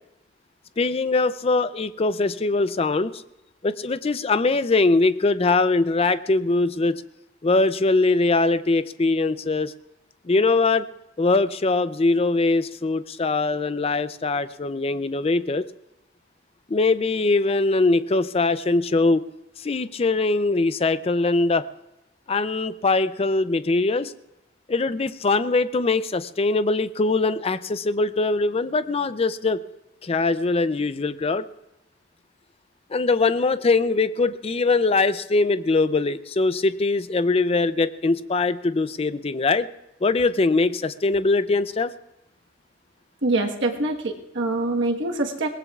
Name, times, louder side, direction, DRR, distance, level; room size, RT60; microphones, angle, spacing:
voice 1, 0.8-3.2 3.6-7.0 7.4-9.7 10.3-10.9 11.2-15.7 16.7-19.2 19.6-21.7 22.3-24.1 24.7-29.6 30.0-31.5 32.9-39.7 40.0-41.9, left 3 dB, 30° left, 13 dB, 0.4 m, -22 dB
voice 2, 43.2-45.5, right 2 dB, 60° right, 2 dB, 1.4 m, -24 dB
22.5 x 19.0 x 2.4 m, 0.89 s
head